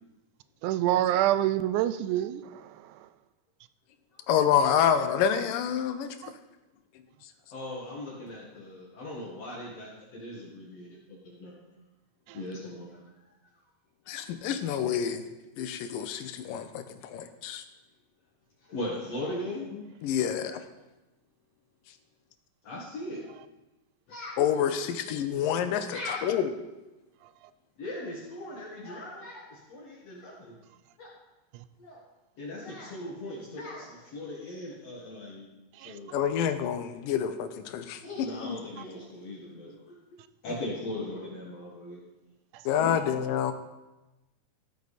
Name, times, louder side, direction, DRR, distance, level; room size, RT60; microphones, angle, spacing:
voice 1, 0.6-3.1 6.2-6.3 12.3-12.4 27.2-27.5 31.5-31.6 35.7-36.0 42.5-42.7, right 13 dB, 80° right, 13 dB, 1.9 m, -28 dB
voice 2, 4.3-6.2 14.1-15.2 15.6-17.6 19.7-20.6 24.4-26.4 36.1-38.0 38.4-38.6 42.7-43.5, left 8 dB, 85° left, 9 dB, 2.5 m, -28 dB
voice 3, 7.5-11.5 12.3-13.3 14.0-14.2 18.6-19.7 22.6-23.2 24.1-24.4 25.3-25.6 25.9-26.3 27.8-30.5 31.0-31.1 31.8-32.0 32.4-35.5 35.8-36.1 38.0-40.0 40.4-42.0 42.8-43.1, left 1 dB, 55° left, -4 dB, 2.7 m, -39 dB
15.0 x 8.4 x 4.2 m, 1.0 s
omnidirectional pair, 3.8 m